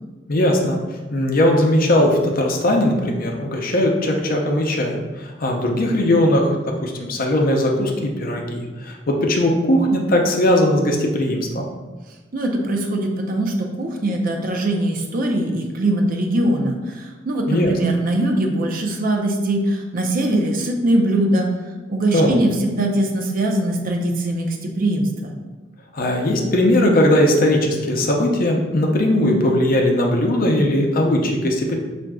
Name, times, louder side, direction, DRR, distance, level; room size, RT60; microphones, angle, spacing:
voice 1, 0.3-0.8 1.1-6.6 6.8-11.6 17.5-17.7 22.1-22.4 25.9-31.8, left 1 dB, 50° left, 1 dB, 0.6 m, -19 dB
voice 2, 12.3-21.5 21.9-25.3, right 1 dB, 50° right, 2 dB, 0.5 m, -21 dB
6.0 x 2.5 x 2.3 m, 1.3 s
head